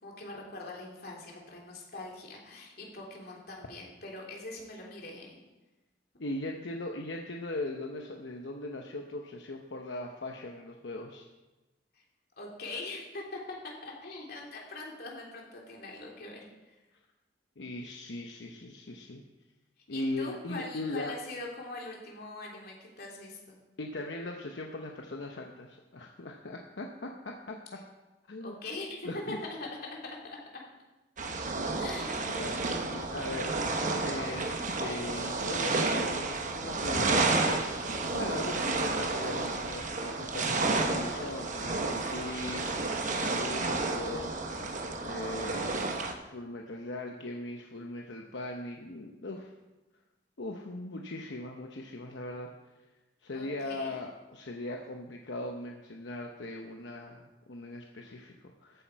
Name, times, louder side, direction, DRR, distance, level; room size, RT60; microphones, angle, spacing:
voice 1, 0.0-5.4 11.9-12.0 12.4-16.8 19.9-23.6 28.4-30.6 31.8-32.3 53.3-54.0, left 2 dB, 60° left, -1 dB, 2.9 m, -42 dB
voice 2, 6.2-11.3 17.6-19.2 19.9-21.1 23.8-27.6 28.3-28.5 29.0-29.4 32.3-33.5 34.0-44.7 45.0-49.5 50.4-52.5 53.2-58.8, left 2 dB, 85° left, 2 dB, 0.9 m, -39 dB
sound 1, 31.2-46.1, right 3 dB, 45° right, 1.1 m, -31 dB
14.0 x 8.3 x 4.7 m, 1.1 s
head